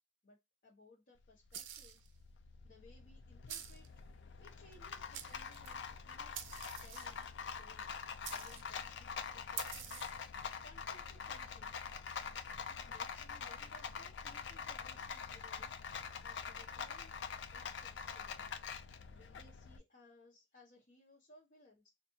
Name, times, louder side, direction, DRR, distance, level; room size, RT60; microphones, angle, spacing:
voice 1, 0.2-2.0 2.6-3.9 4.4-6.5 6.8-7.9 8.3-10.0 10.3-11.7 12.7-15.7 16.2-17.2 17.5-18.5 19.1-21.9, left 2 dB, 45° left, 1.0 m, -63 dB
Rattle, 1.2-19.8, left 6 dB, 65° left, 0.5 m, -45 dB
sound 1, 1.5-2.1 3.5-3.9 4.7-4.8 5.1-5.8 6.3-7.2 8.2-8.7 9.6-10.2, right 10 dB, 75° right, 0.5 m, -47 dB
4.4 x 2.5 x 2.8 m
head